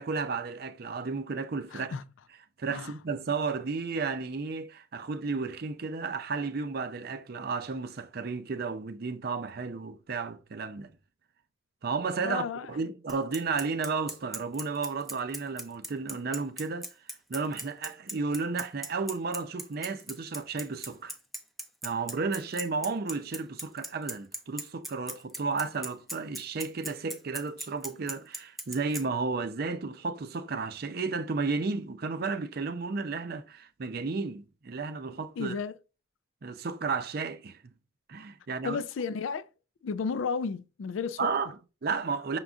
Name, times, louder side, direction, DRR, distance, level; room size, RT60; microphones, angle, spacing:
voice 1, 0.0-2.0 2.6-10.9 11.8-12.4 12.7-16.9 17.3-21.2 21.8-35.5 36.4-37.7 38.1-38.8 41.2-42.4, right 4 dB, 50° right, 0.5 m, -33 dB
voice 2, 1.7-2.0 2.7-2.9 12.2-12.7 35.4-35.8 38.6-39.5 39.8-41.3, left 5 dB, 85° left, 0.4 m, -33 dB
Bicycle, 13.1-29.0, right 1 dB, ahead, 0.5 m, -38 dB
5.9 x 3.7 x 2.4 m
head